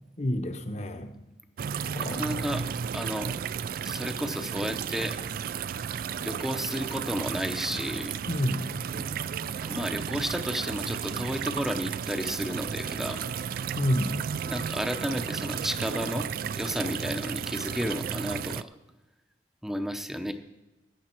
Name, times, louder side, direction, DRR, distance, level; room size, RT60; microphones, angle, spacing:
voice 1, 0.2-1.2 1.9-2.5 8.3-8.7 13.8-14.2, equal, 40° left, 8 dB, 1.0 m, -29 dB
sound 1, 1.6-18.6, right 7 dB, 55° right, 0.3 m, -33 dB
voice 2, 2.0-2.6 2.9-3.4 3.8-5.2 6.2-8.2 8.9-9.2 9.6-13.3 14.4-16.3 16.5-18.7 19.6-20.3, equal, ahead, 8 dB, 0.7 m, -32 dB
14.5 x 9.4 x 4.4 m, 1.0 s
head